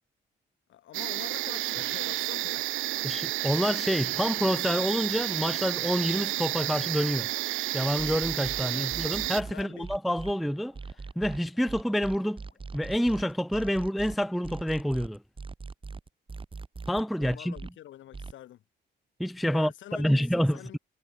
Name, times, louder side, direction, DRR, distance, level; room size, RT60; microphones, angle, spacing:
voice 1, 0.7-2.7 8.5-9.0 9.5-9.9 17.2-18.6 19.5-20.8, left 13 dB, 75° left, 1.3 m, -46 dB
sound 1, 0.9-9.4, right 16 dB, 80° right, 0.7 m, -31 dB
voice 2, 3.0-7.3 7.7-10.7 11.2-12.4 12.7-15.2 16.9-17.5 19.2-20.8, equal, ahead, 0.4 m, -28 dB
sound 2, 7.0-13.2, left 6 dB, 45° left, 7.4 m, -68 dB
sound 3, 8.0-10.3 10.7-17.7 18.1-18.3, right 4 dB, 25° right, 2.1 m, -40 dB
cardioid pair, 90°, 20 cm